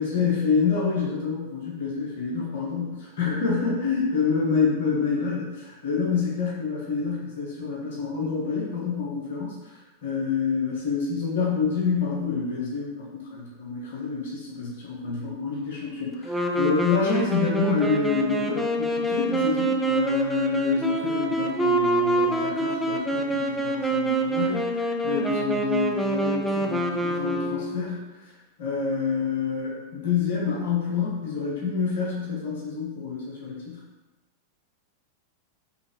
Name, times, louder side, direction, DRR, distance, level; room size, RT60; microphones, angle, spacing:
voice 1, 0.0-5.5 5.8-33.8, left 5 dB, 55° left, -4 dB, 1.1 m, -27 dB
Wind instrument woodwind instrument, 16.2-28.0, right 2 dB, 5° left, 0.5 m, -26 dB
5.4 x 3.2 x 3.0 m, 1.1 s
figure-of-eight pair, 90°, 0 cm